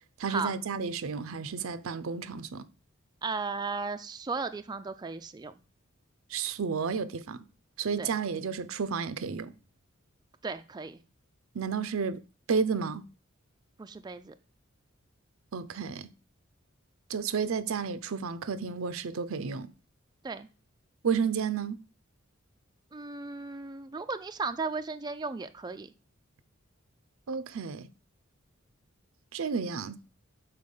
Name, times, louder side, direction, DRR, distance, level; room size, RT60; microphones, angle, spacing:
voice 1, 0.2-2.7 6.3-7.4 7.8-9.5 11.5-12.2 12.5-13.0 15.5-16.1 17.1-19.7 21.0-21.8 27.3-27.9 29.3-30.0, right 5 dB, 75° right, 0.6 m, -31 dB
voice 2, 3.2-5.6 8.0-8.1 10.4-11.0 13.8-14.3 20.2-20.5 22.9-25.9, right 4 dB, 20° right, 0.4 m, -35 dB
6.6 x 4.2 x 5.4 m
head